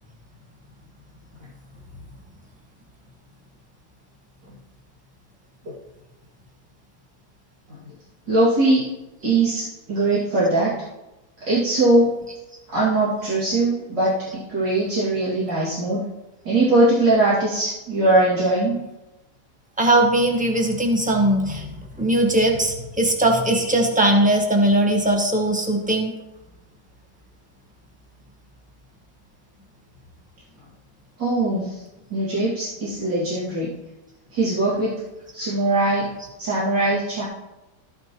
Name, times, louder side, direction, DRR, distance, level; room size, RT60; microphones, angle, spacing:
voice 1, 8.3-8.8 9.2-10.7 11.4-12.1 12.7-16.0 16.4-18.8 31.2-31.8 32.1-33.7 34.3-35.0 35.3-36.1 36.4-37.2, right 2 dB, 75° right, -9 dB, 3.1 m, -21 dB
voice 2, 19.8-21.7 22.0-26.1, right 1 dB, 5° right, 1 dB, 1.3 m, -19 dB
14.0 x 9.2 x 3.1 m, 0.99 s
omnidirectional pair, 1.9 m